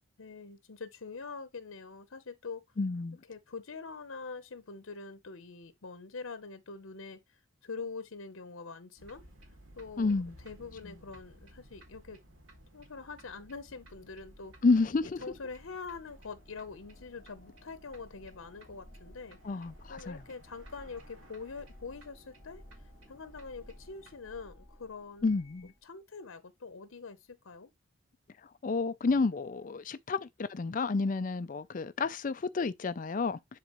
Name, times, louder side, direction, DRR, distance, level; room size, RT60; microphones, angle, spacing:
voice 1, 0.2-2.6 3.3-9.2 9.8-12.2 12.7-14.5 15.0-22.6 23.1-25.3 25.6-27.7, left 4 dB, 80° left, 0.8 m, -44 dB
voice 2, 2.8-3.2 10.0-10.3 14.6-15.2 19.4-20.2 25.2-25.7 28.6-33.4, left 3 dB, 40° left, 0.4 m, -30 dB
sound 1, 9.0-24.2, right 1 dB, 75° right, 2.2 m, -57 dB
sound 2, 15.3-25.8, left 1 dB, ahead, 3.3 m, -57 dB
10.5 x 3.9 x 3.0 m
head